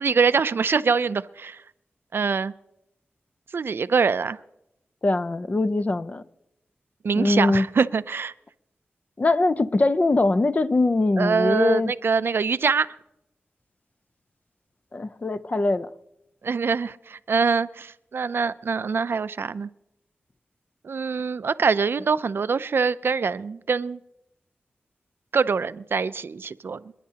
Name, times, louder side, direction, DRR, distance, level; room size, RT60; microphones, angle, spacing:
voice 1, 0.0-1.6 2.1-2.5 3.5-4.4 7.0-8.3 11.2-12.9 16.4-19.7 20.8-24.0 25.3-26.9, right 5 dB, 70° right, 0.4 m, -24 dB
voice 2, 5.0-6.2 7.1-7.7 9.2-11.9 14.9-15.9, left 2 dB, 40° left, 0.6 m, -22 dB
29.5 x 10.0 x 2.9 m
wide cardioid pair, 75°, 4 cm